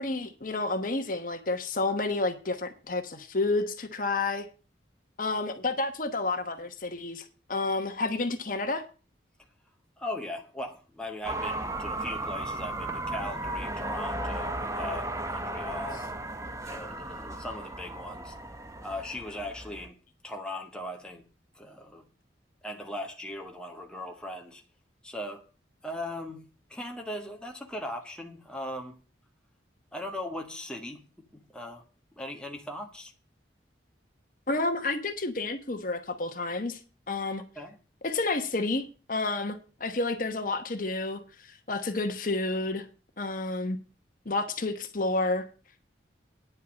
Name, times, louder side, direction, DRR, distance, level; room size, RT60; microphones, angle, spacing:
voice 1, 0.0-4.5 5.2-8.8 34.5-36.8 37.1-37.4 38.0-42.9 43.2-43.8 44.2-45.5, left 2 dB, 45° left, 1.1 m, -30 dB
voice 2, 10.0-16.0 16.6-18.3 18.8-20.0 20.2-21.2 21.5-22.1 22.6-24.6 25.0-25.4 25.8-26.4 26.7-29.0 29.9-31.0 31.3-31.8 32.2-33.1 37.5-37.8, left 1 dB, 5° left, 1.4 m, -39 dB
sound 1, 11.2-19.9, right 2 dB, 15° right, 0.9 m, -35 dB
9.8 x 5.6 x 8.4 m
head